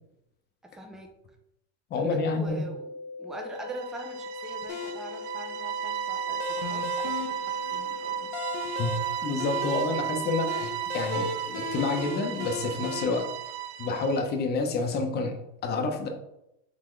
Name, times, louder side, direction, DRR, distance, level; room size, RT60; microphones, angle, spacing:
voice 1, 0.7-1.1 2.0-2.9 3.2-8.3, right 1 dB, ahead, 2 dB, 0.4 m, -43 dB
voice 2, 1.9-2.6 8.8-9.0 9.2-13.3 13.8-16.1, left 3 dB, 30° left, 4 dB, 0.7 m, -29 dB
sound 1, 2.5-8.5, left 3 dB, 15° right, 1.0 m, -40 dB
sound 2, 3.5-14.3, right 11 dB, 80° right, 0.5 m, -34 dB
sound 3, 4.7-13.0, left 6 dB, 70° left, 0.8 m, -37 dB
3.9 x 3.5 x 3.2 m, 0.84 s
supercardioid pair, 135°, 35 cm